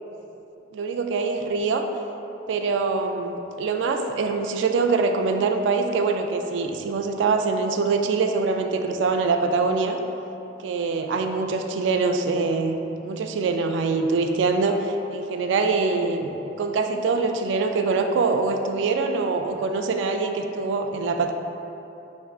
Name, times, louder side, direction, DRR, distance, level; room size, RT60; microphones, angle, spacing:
voice 1, 0.7-1.8 2.5-10.0 10.6-16.3 16.6-21.3, right 4 dB, 80° right, 6 dB, 0.3 m, -24 dB
5.4 x 3.5 x 2.3 m, 2.9 s
head